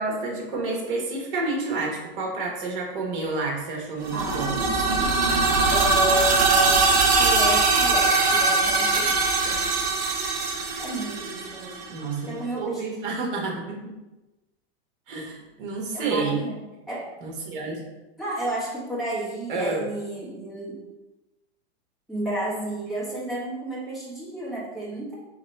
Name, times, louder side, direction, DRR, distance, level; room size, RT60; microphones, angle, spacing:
voice 1, 0.0-4.6 11.9-13.9 15.1-16.4 17.2-17.8 19.5-19.8, right 3 dB, 55° right, 0 dB, 1.2 m, -29 dB
sound 1, 4.0-11.8, right 3 dB, 40° right, 0.6 m, -21 dB
voice 2, 4.1-4.5 4.9-5.1 5.7-6.8 7.2-9.8 10.8-11.8 12.2-13.5 15.9-16.6 16.9-17.1 18.2-20.8 22.1-25.1, right 1 dB, ahead, -8 dB, 0.9 m, -32 dB
3.2 x 2.9 x 4.3 m, 1.0 s
supercardioid pair, 160°, 31 cm